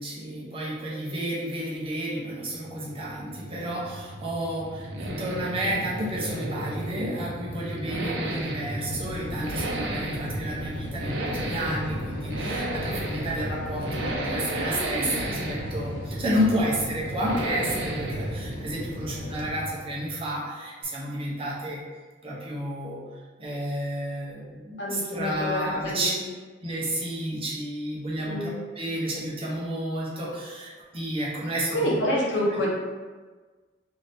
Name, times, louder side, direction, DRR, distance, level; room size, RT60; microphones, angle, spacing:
voice 1, 0.0-21.8 22.2-23.0 23.4-26.3 26.6-28.5 28.7-32.0 32.5-32.7, equal, 30° right, -5 dB, 0.7 m, -31 dB
sound 1, 2.3-20.4, right 1 dB, 85° right, 0.5 m, -33 dB
sound 2, 8.9-19.5, left 2 dB, 45° left, 0.3 m, -39 dB
voice 2, 24.8-26.2 28.2-28.6 31.7-32.7, left 1 dB, 70° left, -4 dB, 0.8 m, -27 dB
2.7 x 2.6 x 3.3 m, 1.4 s
head